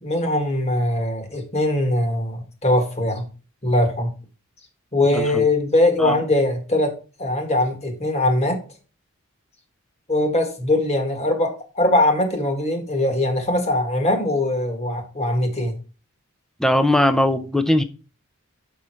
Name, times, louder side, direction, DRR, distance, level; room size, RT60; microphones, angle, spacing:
voice 1, 0.0-3.3 3.6-4.1 4.9-6.9 7.2-8.6 10.1-15.8, left 1 dB, 30° left, 5 dB, 1.6 m, -21 dB
voice 2, 5.1-5.4 6.0-6.2 16.6-17.8, left 1 dB, ahead, 10 dB, 0.5 m, -19 dB
6.2 x 5.4 x 4.3 m, 0.34 s
head